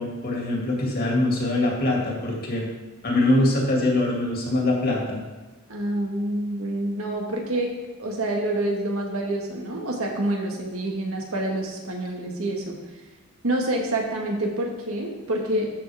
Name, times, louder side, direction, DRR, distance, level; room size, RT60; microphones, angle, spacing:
voice 1, 0.0-2.7 3.0-5.2, left 2 dB, 45° left, -2 dB, 2.3 m, -23 dB
voice 2, 5.7-7.7 8.0-12.8 13.4-15.7, right 1 dB, 80° right, 0 dB, 1.7 m, -27 dB
13.0 x 5.9 x 3.5 m, 1.2 s
head